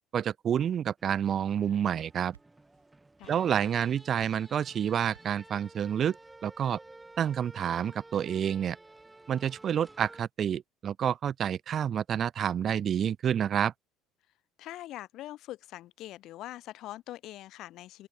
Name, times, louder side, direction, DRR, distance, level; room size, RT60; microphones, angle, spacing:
voice 1, 0.1-2.3 3.3-6.2 6.4-6.8 7.2-8.8 9.3-13.7, right 9 dB, 45° right, 0.4 m, -29 dB
sound 1, 1.0-10.2, right 2 dB, 15° right, 3.8 m, -53 dB
sound 2, 2.1-2.9 3.2-3.8 4.2-4.6 5.1-5.5, right 9 dB, 85° right, 4.8 m, -59 dB
voice 2, 14.6-18.1, left 15 dB, 60° left, 2.5 m, -43 dB
open air
hypercardioid pair, 60°, 0 cm